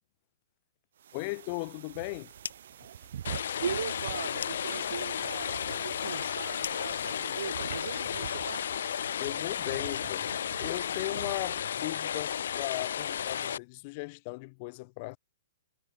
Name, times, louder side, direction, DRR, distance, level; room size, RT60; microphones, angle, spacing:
sound 1, 1.0-11.7, right 10 dB, 50° right, 2.2 m, -46 dB
voice 1, 1.1-2.3 9.2-15.2, left 28 dB, 25° left, 2.7 m, -37 dB
sound 2, 2.3-2.8 3.1-8.0, left 7 dB, 75° left, 4.5 m, -45 dB
sound 3, 3.2-13.6, left 9 dB, 60° left, 0.4 m, -33 dB
voice 2, 3.6-8.7, right 8 dB, 65° right, 1.8 m, -39 dB
hypercardioid pair, 175°, 0 cm